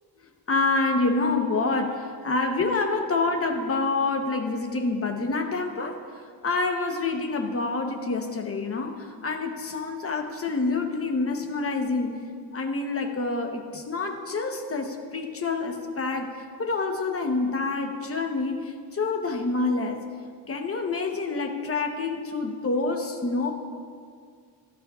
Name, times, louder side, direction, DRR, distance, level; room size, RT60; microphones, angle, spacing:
voice 1, 0.5-6.0 6.4-12.1 12.5-20.0 20.5-23.5, left 3 dB, 30° left, 4 dB, 1.0 m, -27 dB
17.0 x 11.5 x 2.4 m, 2.1 s
wide cardioid pair, 145°, 43 cm